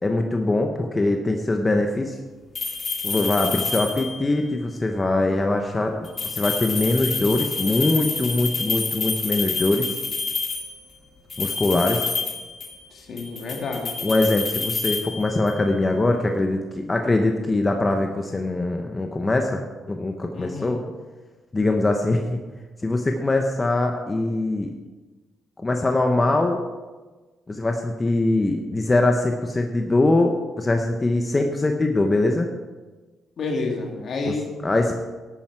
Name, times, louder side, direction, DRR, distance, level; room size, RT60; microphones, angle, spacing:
voice 1, 0.0-2.2 3.0-9.9 11.4-12.0 14.0-20.8 21.5-22.4 22.8-24.7 25.6-26.6 27.5-32.5 34.2-34.3 34.6-34.9, left 2 dB, 20° left, 3 dB, 0.9 m, -22 dB
sound 1, 2.5-4.3 6.0-10.8 11.3-12.9 13.2-15.6, left 3 dB, 40° left, 1.8 m, -28 dB
voice 2, 12.9-14.0 20.3-20.8 33.4-34.5, left 3 dB, 55° left, 1 dB, 2.3 m, -29 dB
11.5 x 8.8 x 4.7 m, 1.3 s
cardioid pair, 90°, 0 cm